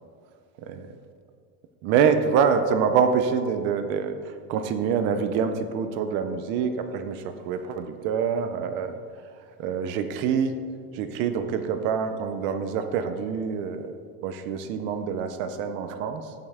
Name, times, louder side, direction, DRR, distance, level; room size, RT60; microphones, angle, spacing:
voice 1, 0.6-0.9 1.8-9.0 9.6-10.6 10.9-13.9 14.2-16.3, right 6 dB, 35° right, 8 dB, 0.4 m, -26 dB
14.5 x 5.5 x 3.5 m, 2.1 s
cardioid pair, 180°, 37 cm